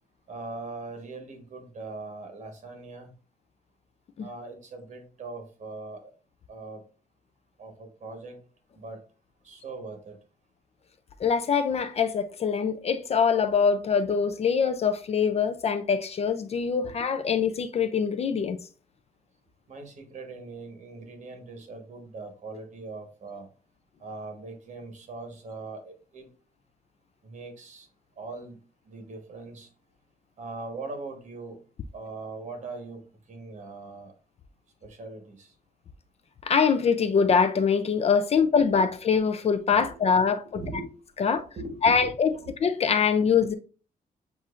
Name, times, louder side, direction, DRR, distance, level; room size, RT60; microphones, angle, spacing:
voice 1, 0.3-3.1 4.2-6.0 6.5-6.8 7.6-8.4 8.7-9.0 9.4-10.2 16.8-16.9 19.7-23.5 24.0-26.3 27.2-27.9 28.2-28.6 28.8-29.7 30.4-31.6 31.9-34.1 34.8-35.5 39.8-40.1 40.4-40.9 41.3-42.5, right 3 dB, 50° right, 1.3 m, -40 dB
voice 2, 11.2-18.6 36.5-40.4 41.2-41.4 41.8-42.3 42.6-43.5, left 6 dB, 40° left, 0.4 m, -23 dB
7.2 x 2.6 x 2.4 m
cardioid pair, 130°, 16 cm